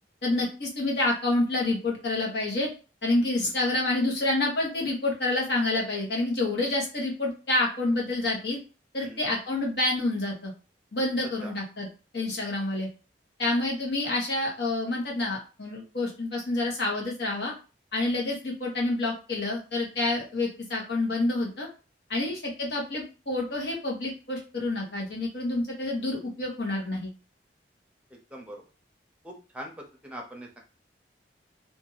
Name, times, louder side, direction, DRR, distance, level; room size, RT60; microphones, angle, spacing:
voice 1, 0.2-2.7 3.0-8.6 8.9-10.5 10.9-11.9 12.1-12.9 13.4-17.5 17.9-21.7 22.1-27.1, left 2 dB, 65° left, -2 dB, 1.3 m, -28 dB
voice 2, 28.1-28.6 29.2-30.6, right 1 dB, 5° right, 0 dB, 0.7 m, -43 dB
2.7 x 2.6 x 4.0 m, 0.33 s
head